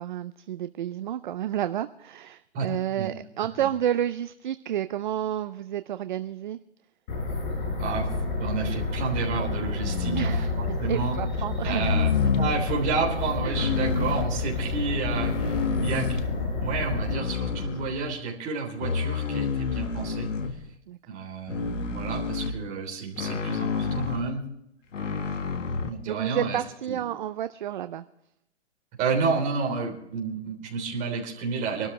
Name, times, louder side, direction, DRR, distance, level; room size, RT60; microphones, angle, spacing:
voice 1, 0.0-6.6 10.1-10.6 10.9-11.9 13.4-13.8 20.9-21.0 26.1-28.0, right 11 dB, 40° right, 12 dB, 0.5 m, -30 dB
sound 1, 7.1-17.1, left 3 dB, 40° left, 6.5 m, -29 dB
voice 2, 8.4-11.2 11.6-12.1 12.4-16.2 16.6-20.3 21.1-24.4 25.8-26.6 26.9-27.0 29.0-31.9, right 5 dB, 20° right, 0 dB, 3.5 m, -30 dB
sound 2, 9.8-10.8 11.7-12.7 13.6-14.3 15.0-16.4 17.1-18.2 18.8-20.7 21.5-22.6 23.2-24.3 24.9-25.9, left 5 dB, 85° left, 1.8 m, -29 dB
24.5 x 13.0 x 3.2 m, 0.78 s
hypercardioid pair, 155°, 36 cm